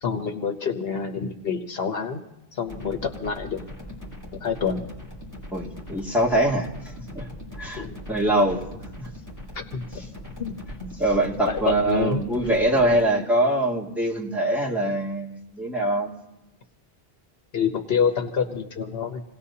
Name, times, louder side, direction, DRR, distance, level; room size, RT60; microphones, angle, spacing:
voice 1, 0.0-2.2 2.5-3.6 4.4-4.8 7.8-7.9 9.7-9.8 10.4-10.5 10.8-10.9 11.5-12.2 17.5-19.2, left 6 dB, 70° left, 5 dB, 1.2 m, -27 dB
sound 1, 2.7-13.0, left 1 dB, 15° left, 3.7 m, -40 dB
voice 2, 5.5-6.7 7.1-7.3 7.6-8.6 9.0-9.1 11.0-16.1, right 1 dB, ahead, -4 dB, 2.3 m, -23 dB
27.5 x 17.5 x 2.8 m, 0.90 s
omnidirectional pair, 1.1 m